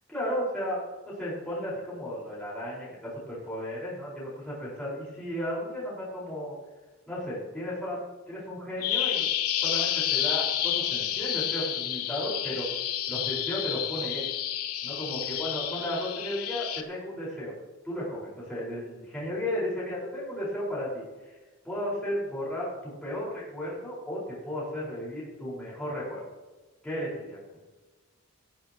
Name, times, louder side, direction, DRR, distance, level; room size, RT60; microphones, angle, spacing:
voice 1, 0.1-0.8 1.0-6.5 7.1-9.3 9.6-12.7 13.1-14.3 14.8-17.5 17.8-21.4 21.6-26.3 26.8-27.4, equal, 5° left, -9 dB, 5.1 m, -34 dB
Bird vocalization bird call bird song, 8.8-16.8, left 11 dB, 85° left, 1.2 m, -30 dB
18.0 x 14.5 x 3.1 m, 1.2 s
head